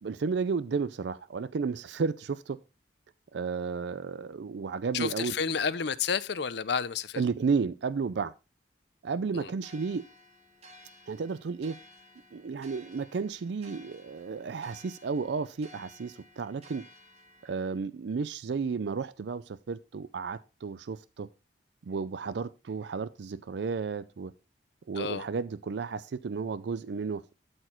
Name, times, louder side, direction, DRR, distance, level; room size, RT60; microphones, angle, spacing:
voice 1, 0.0-2.6 3.3-5.3 7.2-8.3 9.0-10.0 11.1-11.8 12.3-16.8 17.4-21.3 21.9-24.3 24.9-27.3, right 5 dB, 70° right, 0.4 m, -32 dB
voice 2, 4.9-7.2 9.3-9.5 24.9-25.2, left 6 dB, 65° left, 0.6 m, -30 dB
sound 1, 9.6-17.8, left 1 dB, 35° right, 1.9 m, -55 dB
12.5 x 4.4 x 4.4 m
head